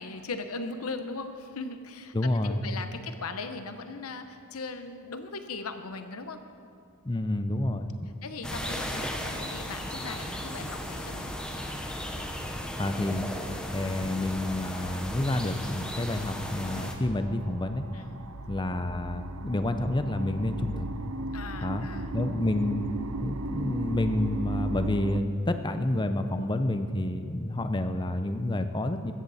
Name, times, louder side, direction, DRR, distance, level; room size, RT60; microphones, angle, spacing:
voice 1, 0.0-2.1 2.4-6.4 8.2-11.3 17.9-18.2 21.3-22.1, left 3 dB, 80° left, 8 dB, 1.0 m, -39 dB
voice 2, 2.1-2.6 7.0-7.9 12.5-13.3 13.7-17.9 18.5-20.9 21.6-21.9 22.1-22.8 23.2-29.1, left 1 dB, 20° left, 9 dB, 0.7 m, -29 dB
sound 1, 8.4-16.9, equal, 5° left, 1.0 m, -36 dB
sound 2, 15.3-25.2, right 2 dB, 85° right, 0.6 m, -37 dB
15.5 x 13.5 x 4.2 m, 2.5 s
head